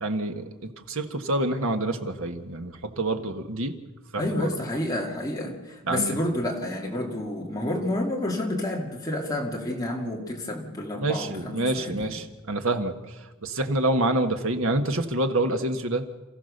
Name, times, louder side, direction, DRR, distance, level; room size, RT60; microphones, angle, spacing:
voice 1, 0.0-3.8 4.1-4.5 5.8-6.2 10.9-13.1 13.4-16.0, right 2 dB, 65° right, 6 dB, 1.6 m, -27 dB
voice 2, 4.2-12.2, left 1 dB, 15° left, -1 dB, 2.8 m, -29 dB
28.0 x 15.0 x 6.7 m, 1.2 s
head